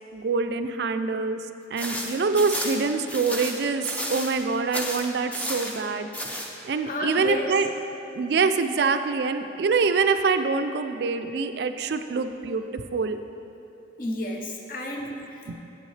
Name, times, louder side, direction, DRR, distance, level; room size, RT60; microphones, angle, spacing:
voice 1, 0.1-1.4 1.7-6.1 6.6-7.7 8.1-13.2 15.5-15.6, right 4 dB, 60° right, 9 dB, 0.3 m, -25 dB
sound 1, 1.8-4.4 4.7-5.8 6.1-6.5, equal, 5° left, 0.5 m, -32 dB
voice 2, 6.8-7.5 14.0-15.6, left 1 dB, 45° left, 1 dB, 0.7 m, -32 dB
8.5 x 8.2 x 3.2 m, 2.9 s
head